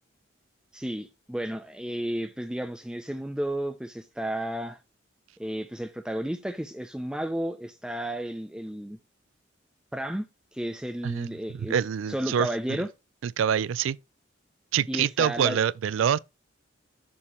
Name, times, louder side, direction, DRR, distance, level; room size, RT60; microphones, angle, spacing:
voice 1, 0.7-4.8 5.4-9.0 9.9-10.2 10.5-11.8 12.1-12.9 14.9-15.6, right 1 dB, 5° right, 0.4 m, -32 dB
voice 2, 11.0-12.8 13.2-14.0 14.7-16.2, right 8 dB, 90° right, 0.4 m, -26 dB
7.0 x 2.8 x 4.9 m
head